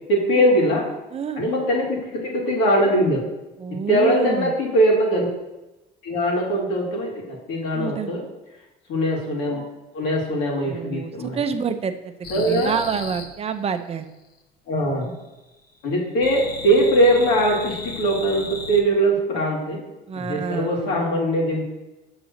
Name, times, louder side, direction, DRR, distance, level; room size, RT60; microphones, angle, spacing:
voice 1, 0.1-0.9 1.4-3.2 3.9-5.3 6.0-8.3 8.9-9.6 9.9-11.4 12.3-12.8 14.7-15.1 15.8-19.8 20.1-21.6, right 1 dB, 80° left, -2 dB, 2.3 m, -21 dB
voice 2, 1.1-1.4 3.6-4.5 7.7-8.1 10.6-14.1 20.1-21.0, right 6 dB, 30° right, 8 dB, 0.6 m, -28 dB
sound 1, 12.2-13.3 16.2-18.8, left 4 dB, 55° left, 1.1 m, -35 dB
6.7 x 4.0 x 6.5 m, 1.0 s
cardioid pair, 110°, 20 cm